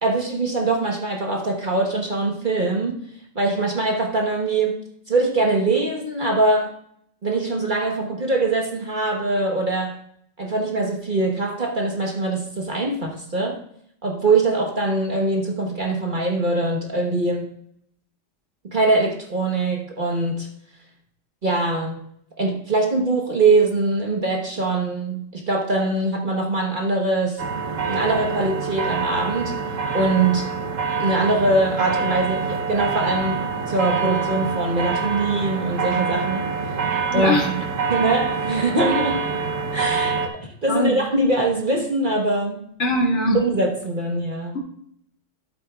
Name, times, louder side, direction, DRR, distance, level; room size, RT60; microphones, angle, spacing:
voice 1, 0.0-3.0 3.3-4.8 5.1-6.7 7.2-10.0 10.4-13.6 14.0-17.5 18.7-20.5 21.4-22.1 22.4-27.4 27.9-29.5 29.9-30.5 31.0-36.5 37.1-37.6 37.9-39.2 39.7-40.3 40.6-42.7 43.3-44.6, right 2 dB, 40° right, 0 dB, 1.4 m, -22 dB
sound 1, 27.4-40.3, right 5 dB, 75° right, 1.4 m, -25 dB
voice 2, 37.1-37.5 40.7-41.0 42.8-43.4, equal, 60° left, -1 dB, 2.3 m, -21 dB
12.0 x 8.3 x 2.4 m, 0.71 s
omnidirectional pair, 1.4 m